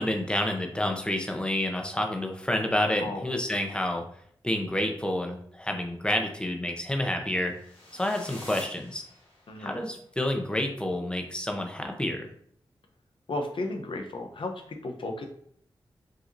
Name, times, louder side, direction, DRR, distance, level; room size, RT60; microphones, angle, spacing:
voice 1, 0.0-4.0 4.4-7.5 7.9-9.0 9.6-12.2, left 1 dB, 10° left, 3 dB, 0.8 m, -29 dB
voice 2, 3.0-3.3 9.5-9.8 13.3-15.2, left 2 dB, 65° left, 4 dB, 0.8 m, -34 dB
sound 1, 7.5-9.7, left 1 dB, 90° left, 1.2 m, -47 dB
5.0 x 2.8 x 2.6 m, 0.65 s
cardioid pair, 45°, 9 cm